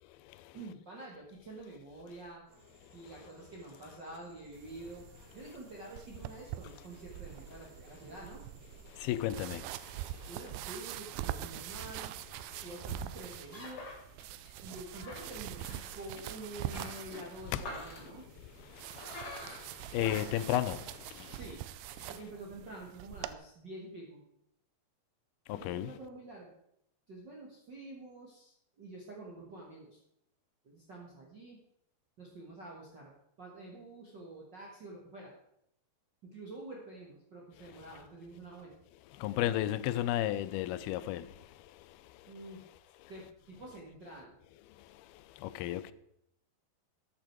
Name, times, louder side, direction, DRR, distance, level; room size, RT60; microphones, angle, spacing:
voice 1, 0.5-2.4 2.9-5.1 5.3-8.4 10.3-12.1 12.6-13.9 14.6-18.2 20.0-20.3 21.3-21.6 22.1-24.2 25.5-26.5 27.1-30.0 30.6-31.6 32.2-33.1 33.4-35.3 36.2-38.7 42.3-42.6 43.1-44.3, right 2 dB, 45° right, 1.5 m, -48 dB
sound 1, 2.5-10.1, equal, 20° right, 4.5 m, -62 dB
sound 2, 4.5-23.3, right 13 dB, 85° right, 2.4 m, -44 dB
voice 2, 9.1-9.6 19.9-20.8 25.7-25.9 39.2-41.2 45.6-45.9, left 13 dB, 85° left, 2.5 m, -31 dB
sound 3, 11.1-21.3, left 2 dB, 45° left, 3.9 m, -49 dB
13.0 x 8.8 x 4.6 m
omnidirectional pair, 4.3 m